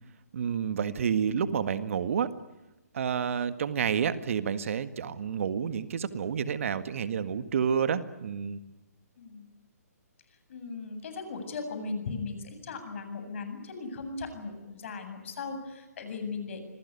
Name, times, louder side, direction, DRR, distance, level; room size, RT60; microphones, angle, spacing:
voice 1, 0.3-2.3 2.9-8.6, right 7 dB, 55° right, 12 dB, 1.8 m, -29 dB
voice 2, 9.2-9.5 10.3-16.6, left 4 dB, 50° left, 8 dB, 7.8 m, -38 dB
26.5 x 21.0 x 9.7 m, 1.0 s
hypercardioid pair, 145°, 9 cm